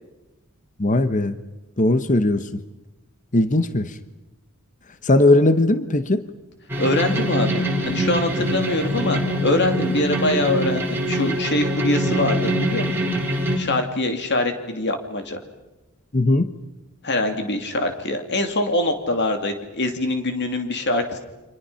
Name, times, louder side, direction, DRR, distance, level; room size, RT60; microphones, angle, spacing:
voice 1, 0.8-1.4 1.8-2.6 3.3-3.9 5.0-6.3 16.1-16.5, left 2 dB, 35° left, 12 dB, 1.0 m, -18 dB
sound 1, 6.7-13.6, equal, 10° right, 4.5 m, -23 dB
voice 2, 6.8-12.9 13.6-15.4 17.0-21.2, left 1 dB, 55° left, 6 dB, 2.9 m, -24 dB
30.0 x 25.5 x 5.7 m, 1.0 s
head